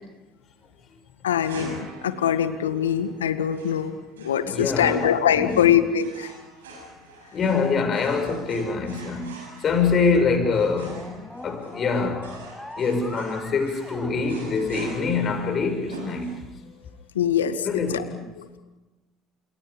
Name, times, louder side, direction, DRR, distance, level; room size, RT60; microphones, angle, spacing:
voice 1, 1.2-6.3 17.2-18.1 18.4-18.5, left 9 dB, 85° left, 1.8 m, -23 dB
sound 1, 1.4-16.8, right 3 dB, 85° right, 7.2 m, -45 dB
voice 2, 4.4-5.8 7.3-11.1 11.4-12.3 12.8-16.5 17.6-18.2, left 4 dB, 45° left, 7.0 m, -25 dB
sound 2, 9.7-15.2, left 1 dB, 10° left, 6.4 m, -41 dB
30.0 x 28.5 x 5.4 m
hypercardioid pair, 60°, 0 cm